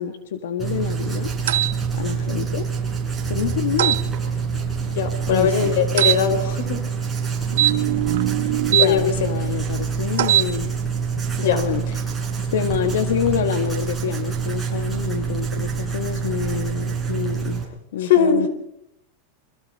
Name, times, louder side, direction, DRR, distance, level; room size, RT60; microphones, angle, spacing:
voice 1, 0.0-1.3 1.9-2.7 3.3-4.0 5.3-5.7 6.3-6.4 8.7-10.7 11.4-18.5, left 8 dB, 90° left, 8 dB, 1.8 m, -27 dB
Writing, 0.6-17.6, right 6 dB, 10° right, 7.2 m, -26 dB
sound 1, 1.5-1.7 3.8-4.0 6.0-6.2 7.5-8.9 10.1-10.5, right 14 dB, 75° right, 0.9 m, -20 dB
voice 2, 4.9-6.8 8.8-9.1 11.4-11.6 18.0-18.4, left 7 dB, 75° left, 7 dB, 5.3 m, -20 dB
30.0 x 25.5 x 4.3 m, 0.76 s
supercardioid pair, 150°, 0 cm